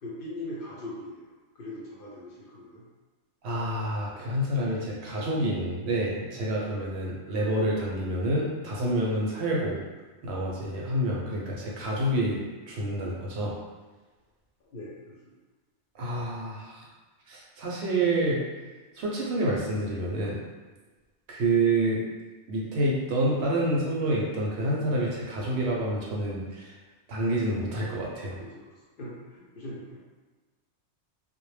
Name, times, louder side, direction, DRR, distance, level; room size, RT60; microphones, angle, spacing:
voice 1, 0.0-2.8 14.7-15.3 28.4-28.7 29.0-30.0, left 1 dB, 60° left, -6 dB, 0.7 m, -41 dB
voice 2, 3.4-9.8 10.2-12.4 12.7-13.5 15.9-16.7 17.3-18.4 19.0-20.4 21.3-22.0 22.5-26.7 27.1-28.4, right 1 dB, 70° right, -3 dB, 0.8 m, -28 dB
2.1 x 2.1 x 3.1 m, 1.3 s
omnidirectional pair, 1.2 m